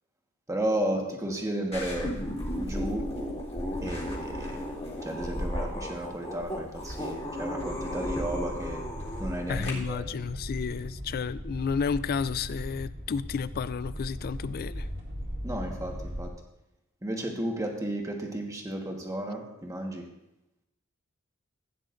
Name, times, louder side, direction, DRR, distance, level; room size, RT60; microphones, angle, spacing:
voice 1, 0.5-2.1 2.6-3.1 3.8-4.6 5.0-8.8 9.2-10.1 15.4-16.3 17.0-20.1, right 1 dB, 15° right, 1 dB, 1.4 m, -33 dB
sound 1, 1.7-9.7, left 1 dB, 30° left, 2.5 m, -34 dB
sound 2, 8.0-16.3, equal, 45° right, 2.1 m, -38 dB
voice 2, 9.5-14.9, left 6 dB, 45° left, 16 dB, 0.3 m, -31 dB
15.0 x 8.8 x 2.6 m, 0.90 s
head